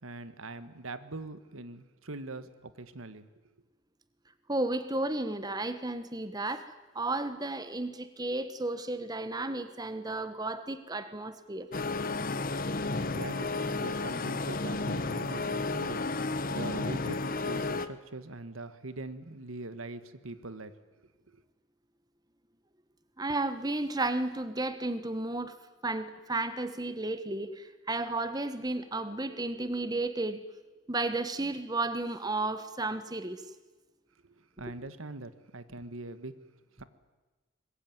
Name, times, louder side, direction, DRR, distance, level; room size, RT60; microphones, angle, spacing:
voice 1, 0.0-3.3 13.0-17.2 17.4-20.7 21.3-21.4 34.2-36.3 36.8-36.9, right 2 dB, 80° right, 12 dB, 1.6 m, -42 dB
voice 2, 4.5-11.7 23.2-25.5 25.8-30.4 30.9-33.4 34.6-34.7, right 2 dB, 20° right, 11 dB, 1.2 m, -33 dB
sound 1, 11.7-17.9, left 3 dB, 45° left, 1.1 m, -32 dB
24.5 x 21.0 x 9.5 m, 1.2 s
head